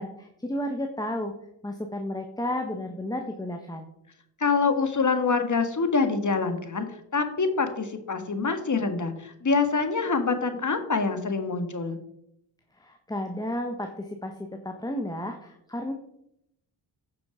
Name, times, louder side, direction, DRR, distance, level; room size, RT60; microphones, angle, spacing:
voice 1, 0.0-1.3 1.6-3.9 12.8-15.9, left 1 dB, 10° left, 4 dB, 1.2 m, -32 dB
voice 2, 4.4-6.8 7.1-12.0, left 4 dB, 35° left, 8 dB, 1.7 m, -25 dB
9.4 x 6.0 x 5.0 m, 0.77 s
supercardioid pair, 55°, 48 cm